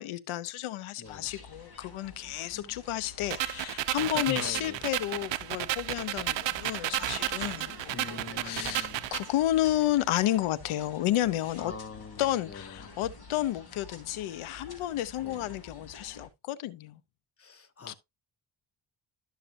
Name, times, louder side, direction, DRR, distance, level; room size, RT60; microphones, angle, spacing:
voice 1, 0.0-11.7 12.2-17.0 17.9-18.0, left 13 dB, 90° left, 0.8 m, -31 dB
sound 1, 1.0-16.3, left 4 dB, 50° left, 3.1 m, -49 dB
voice 2, 1.0-1.3 4.1-4.8 7.9-9.1 11.6-12.9 15.2-15.5 17.4-17.9, left 5 dB, 30° left, 1.0 m, -43 dB
sound 2, 3.3-9.3, right 14 dB, 65° right, 0.7 m, -33 dB
12.5 x 6.6 x 2.6 m
cardioid pair, 90°, 48 cm